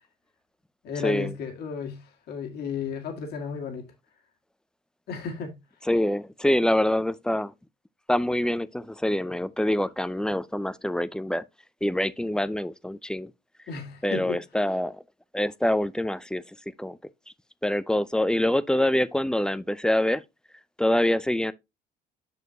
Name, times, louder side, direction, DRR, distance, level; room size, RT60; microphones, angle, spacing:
voice 1, 0.8-3.9 5.1-5.6 13.7-14.4, left 6 dB, 70° left, 1.9 m, -33 dB
voice 2, 5.9-7.5 8.1-11.4 11.8-13.3 14.0-15.0 15.3-16.4 16.8-17.0 17.6-20.2 20.8-21.5, left 1 dB, 5° left, 0.4 m, -25 dB
6.8 x 6.4 x 2.7 m
cardioid pair, 110°, 17 cm